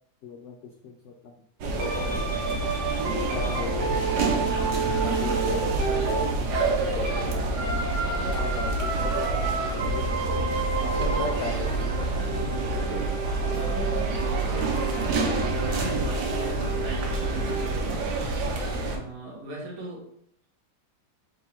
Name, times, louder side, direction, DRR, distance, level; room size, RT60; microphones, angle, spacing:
voice 1, 0.2-0.6 0.8-1.3 1.8-2.6 3.1-4.5 5.0-10.3 10.8-12.1, left 4 dB, 80° left, 2 dB, 0.6 m, -37 dB
sound 1, 1.6-19.0, right 3 dB, 75° right, 1.3 m, -28 dB
sound 2, 1.8-7.3 7.5-17.8, right 4 dB, 45° right, 1.0 m, -32 dB
voice 2, 14.4-18.0 18.9-20.1, right 3 dB, 60° right, -1 dB, 1.4 m, -39 dB
3.7 x 2.8 x 4.3 m, 0.68 s
omnidirectional pair, 1.8 m